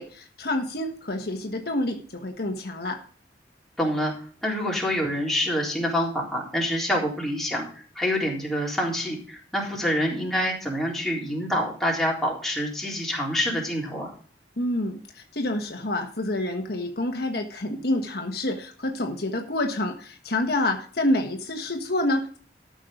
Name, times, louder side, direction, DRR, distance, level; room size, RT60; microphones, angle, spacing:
voice 1, 0.0-3.0 14.6-22.4, left 1 dB, 60° left, 4 dB, 1.4 m, -28 dB
voice 2, 3.8-4.1 4.4-14.1, equal, ahead, -4 dB, 3.9 m, -26 dB
13.0 x 6.4 x 5.2 m, 0.43 s
head